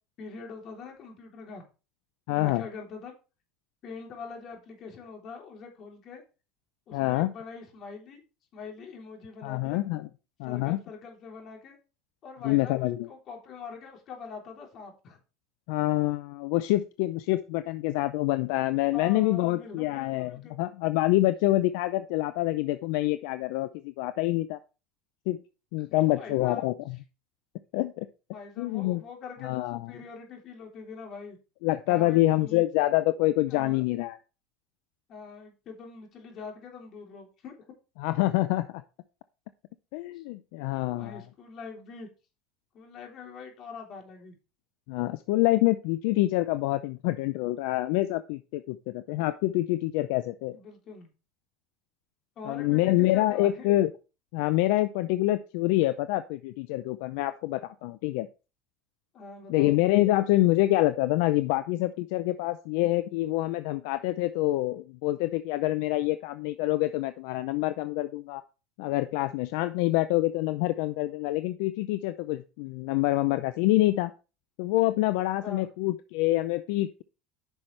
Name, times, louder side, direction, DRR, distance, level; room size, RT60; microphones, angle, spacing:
voice 1, 0.2-1.6 2.3-3.1 3.8-6.2 6.9-8.2 8.5-9.8 10.4-11.8 12.2-15.2 18.9-20.5 25.9-26.6 28.3-31.4 31.9-32.6 33.4-33.8 35.1-37.5 40.1-40.2 40.9-42.1 42.7-44.3 50.5-51.1 52.3-53.8 59.1-59.7 75.4-75.7, left 5 dB, 45° left, 1 dB, 3.4 m, -43 dB
voice 2, 2.3-2.6 6.9-7.3 9.4-10.1 10.4-10.8 12.4-13.1 15.7-24.6 25.3-25.4 25.7-26.7 27.7-28.1 28.6-29.0 29.4-29.9 31.6-34.2 38.0-38.8 39.9-41.2 44.9-50.5 52.5-53.9 54.3-58.3 59.5-68.4 68.8-74.1 74.6-77.0, left 17 dB, 75° left, 12 dB, 0.5 m, -26 dB
9.9 x 6.1 x 3.3 m, 0.31 s
supercardioid pair, 120°, 0 cm